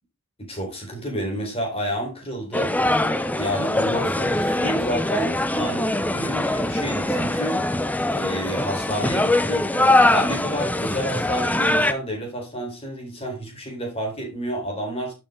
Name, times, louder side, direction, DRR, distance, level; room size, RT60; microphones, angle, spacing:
voice 1, 0.4-2.7 3.3-7.6 8.1-9.7 10.1-15.1, equal, 25° left, 3.9 m, -30 dB
sound 1, 2.5-11.9, left 1 dB, 5° left, 0.5 m, -22 dB
11.5 x 6.9 x 3.7 m
head